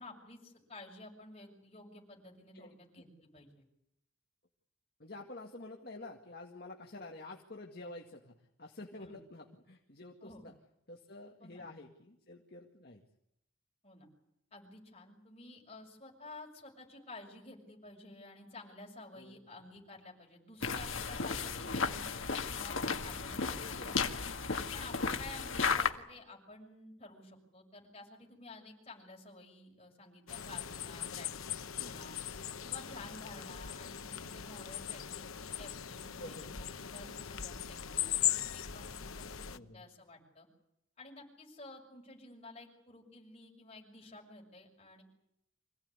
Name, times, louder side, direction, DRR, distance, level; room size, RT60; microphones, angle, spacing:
voice 1, 0.0-3.6 9.0-9.1 10.2-10.5 11.4-11.6 13.8-14.1 14.5-24.2 24.7-32.2 32.6-40.5 41.0-45.0, left 2 dB, 30° left, 0 dB, 6.7 m, -52 dB
voice 2, 5.0-10.5 10.9-13.0 19.2-19.4 23.6-24.0 31.8-32.0 36.2-36.5 39.5-39.9, left 2 dB, 50° left, 1 dB, 2.1 m, -49 dB
sound 1, 20.6-25.9, left 5 dB, 75° left, 2.0 m, -34 dB
sound 2, 30.3-39.6, left 10 dB, 90° left, 1.0 m, -39 dB
26.0 x 17.0 x 9.8 m, 0.81 s
head